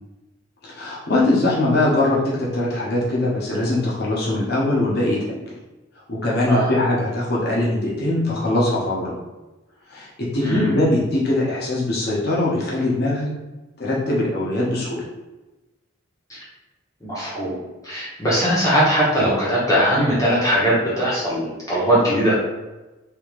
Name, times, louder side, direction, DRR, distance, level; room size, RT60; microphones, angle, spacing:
voice 1, 0.6-5.4 6.1-9.2 9.9-13.3 13.8-15.0, left 1 dB, 50° left, -5 dB, 1.0 m, -21 dB
voice 2, 6.5-6.8 10.4-10.7 16.3-16.4 17.0-17.6 17.8-22.3, equal, 15° left, -8 dB, 1.0 m, -20 dB
3.4 x 3.1 x 3.1 m, 1.1 s
head